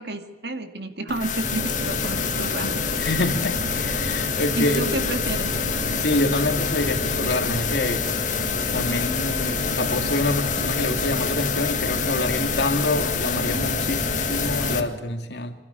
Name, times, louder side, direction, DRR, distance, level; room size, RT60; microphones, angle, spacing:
voice 1, 0.0-2.8 4.5-5.5, right 2 dB, 60° right, 7 dB, 2.3 m, -30 dB
sound 1, 1.1-14.8, left 6 dB, 45° left, 1.8 m, -27 dB
sound 2, 1.4-14.9, right 1 dB, 40° right, 4.5 m, -31 dB
voice 2, 2.9-4.9 6.0-8.1 8.7-15.5, left 2 dB, 65° left, 6 dB, 2.4 m, -26 dB
26.0 x 12.0 x 9.8 m, 1.2 s
head